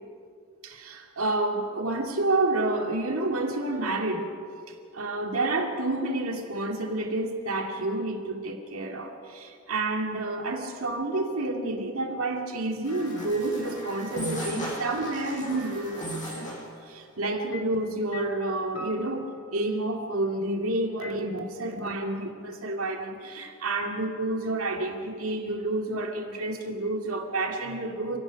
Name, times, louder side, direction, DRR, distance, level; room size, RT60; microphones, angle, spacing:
voice 1, 0.6-4.4 4.8-16.5 16.9-28.2, right 2 dB, 70° right, 2 dB, 2.5 m, -29 dB
sound 1, 12.8-16.7, equal, 35° left, 7.8 m, -36 dB
sound 2, 15.0-15.8 17.5-19.9 21.0-21.1, left 3 dB, 75° left, 2.0 m, -44 dB
29.5 x 17.5 x 5.3 m, 2.3 s
head